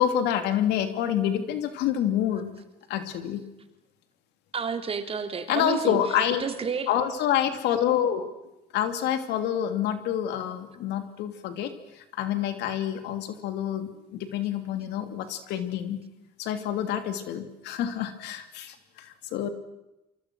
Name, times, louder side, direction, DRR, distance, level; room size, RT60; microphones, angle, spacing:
voice 1, 0.0-2.5 2.9-3.4 5.5-6.4 6.9-8.3 8.7-16.0 16.4-19.5, left 10 dB, 85° left, 9 dB, 3.0 m, -27 dB
voice 2, 4.5-6.0 6.4-6.9, right 5 dB, 35° right, 7 dB, 3.2 m, -30 dB
28.5 x 24.5 x 6.3 m, 0.96 s
cardioid pair, 110°, 17 cm